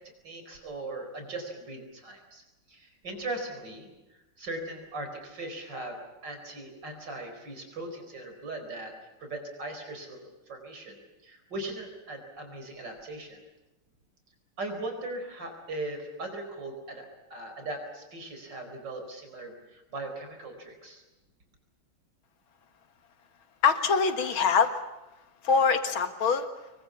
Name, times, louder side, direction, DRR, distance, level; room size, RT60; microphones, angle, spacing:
voice 1, 0.2-3.9 4.4-8.9 9.2-13.4 14.6-21.0, right 2 dB, 55° right, 5 dB, 5.3 m, -39 dB
voice 2, 23.6-24.7 25.4-26.5, left 5 dB, 70° left, 8 dB, 2.5 m, -23 dB
26.5 x 22.5 x 7.2 m, 1.0 s
omnidirectional pair, 2.4 m